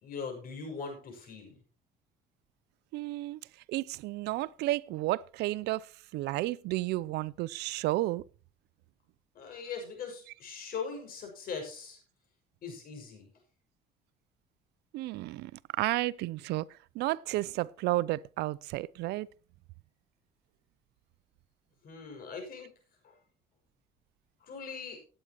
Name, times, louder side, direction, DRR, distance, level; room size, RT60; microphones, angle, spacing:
voice 1, 0.0-1.5 9.3-12.0 12.6-13.3 21.8-22.7 23.0-23.1 24.4-25.0, left 5 dB, 60° left, 6.0 m, -40 dB
voice 2, 2.9-3.4 3.7-5.9 6.1-8.2 14.9-15.5 15.8-19.3, right 17 dB, 80° right, 0.5 m, -32 dB
17.5 x 8.9 x 3.0 m
cardioid pair, 110°, 17 cm